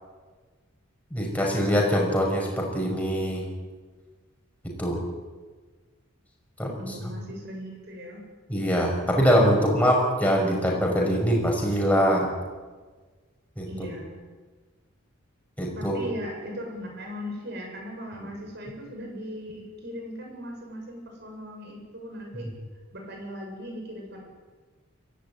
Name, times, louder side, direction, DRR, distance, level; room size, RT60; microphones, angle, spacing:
voice 1, 1.1-3.4 4.8-5.0 6.6-6.7 8.5-12.3 13.6-13.7 15.6-15.9, equal, 5° left, -1 dB, 5.8 m, -23 dB
voice 2, 6.8-8.2 13.6-14.2 15.6-22.5 22.9-24.2, equal, 50° right, 2 dB, 7.4 m, -38 dB
23.0 x 17.0 x 9.6 m, 1.4 s
head